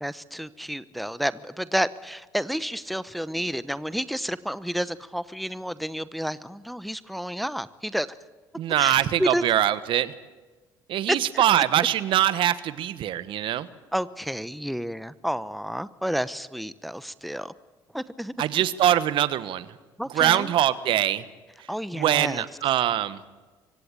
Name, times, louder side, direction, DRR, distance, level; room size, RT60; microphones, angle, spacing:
voice 1, 0.0-8.1 8.8-9.4 11.1-11.4 13.9-17.5 17.9-18.3 20.0-20.5 21.7-22.4, equal, ahead, 15 dB, 0.9 m, -30 dB
voice 2, 8.5-10.1 10.9-13.7 18.4-19.7 20.1-21.2 21.9-23.2, right 12 dB, 65° right, 15 dB, 1.2 m, -23 dB
25.0 x 16.0 x 8.8 m, 1.3 s
supercardioid pair, 70°, 9 cm